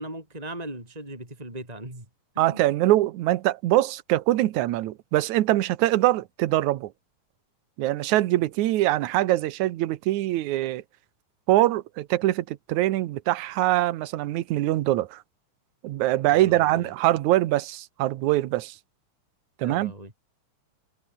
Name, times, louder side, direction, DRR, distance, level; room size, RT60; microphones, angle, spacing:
voice 1, 0.0-2.0 2.3-2.7 16.3-16.9 19.6-20.1, right 1 dB, 10° right, 4.7 m, -38 dB
voice 2, 2.4-6.9 7.8-10.8 11.5-15.2 15.8-18.8 19.6-19.9, right 15 dB, 70° right, 2.1 m, -23 dB
omnidirectional pair, 4.0 m